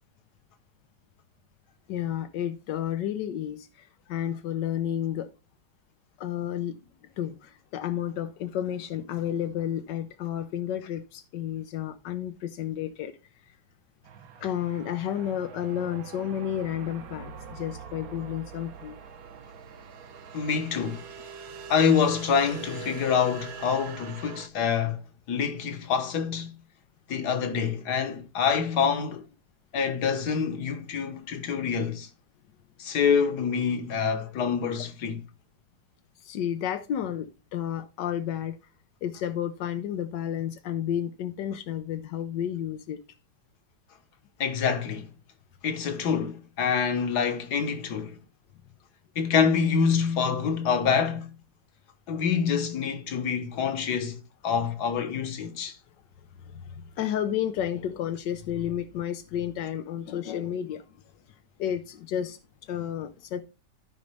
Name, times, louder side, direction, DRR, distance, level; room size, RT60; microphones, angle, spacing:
voice 1, 1.9-5.3 6.2-6.8 7.2-13.1 13.5-13.6 14.4-18.9 21.3-21.7 31.2-31.3 36.2-38.6 39.0-43.0 56.4-61.0 61.6-63.4, left 10 dB, 90° left, 1.4 m, -31 dB
sound 1, 14.0-24.5, right 7 dB, 60° right, 1.3 m, -43 dB
voice 2, 20.3-21.0 21.7-25.0 25.3-26.5 27.1-29.3 29.7-32.1 32.8-35.2 44.4-45.1 45.6-48.2 49.2-51.3 52.1-55.8, left 6 dB, 70° left, 1.8 m, -26 dB
13.5 x 5.2 x 3.3 m
omnidirectional pair, 1.8 m